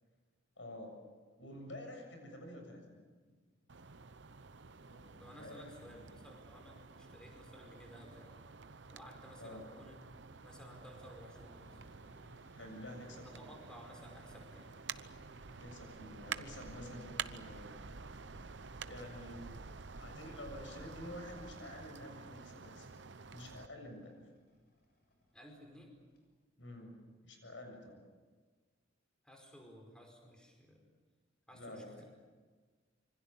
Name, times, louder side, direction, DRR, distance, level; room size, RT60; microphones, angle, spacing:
voice 1, 0.6-1.0 1.4-3.0 4.9-6.1 9.4-9.6 12.5-13.5 15.5-17.8 18.8-19.6 19.9-22.9 23.3-24.2 26.6-28.0 31.5-32.0, left 1 dB, 80° left, 4 dB, 7.4 m, -49 dB
sound 1, 3.7-23.7, right 5 dB, 65° right, 0.9 m, -49 dB
voice 2, 5.2-8.4 8.9-10.0 10.4-11.8 13.3-14.7 25.3-25.9 29.2-30.9 31.5-32.0, equal, 5° left, 2 dB, 5.1 m, -55 dB
sound 2, 11.3-26.2, left 1 dB, 60° left, 7.6 m, -68 dB
26.5 x 25.0 x 7.2 m, 1.4 s
head